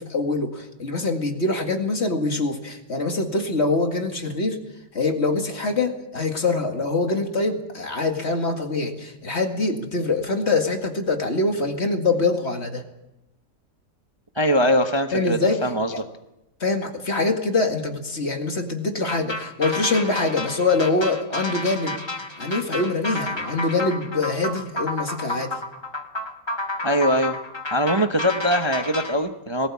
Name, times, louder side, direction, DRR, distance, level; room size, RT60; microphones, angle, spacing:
voice 1, 0.0-4.6 4.9-12.8 15.1-15.6 15.9-16.0 16.6-22.0 22.4-25.6, left 3 dB, 40° left, 4 dB, 2.2 m, -24 dB
voice 2, 14.4-15.9 26.8-27.4 27.7-29.7, equal, 20° right, 6 dB, 0.8 m, -22 dB
sound 1, 19.1-29.1, left 1 dB, 15° left, 1.5 m, -31 dB
19.5 x 17.0 x 8.5 m, 0.93 s
omnidirectional pair, 1.8 m